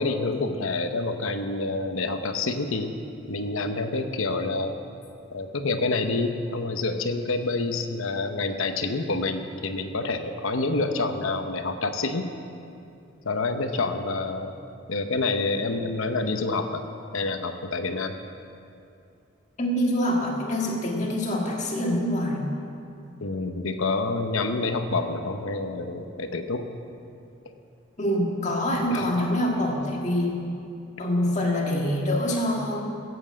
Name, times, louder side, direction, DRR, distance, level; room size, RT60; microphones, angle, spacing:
voice 1, 0.0-2.9 3.3-4.8 5.3-12.3 13.2-14.5 14.9-16.8 17.1-18.2 23.2-26.7 28.9-29.1, left 3 dB, 80° left, 7 dB, 0.9 m, -27 dB
voice 2, 19.6-22.5 28.0-30.3 31.0-32.9, left 1 dB, 35° left, -1 dB, 1.9 m, -25 dB
16.0 x 8.1 x 7.6 m, 2.6 s
head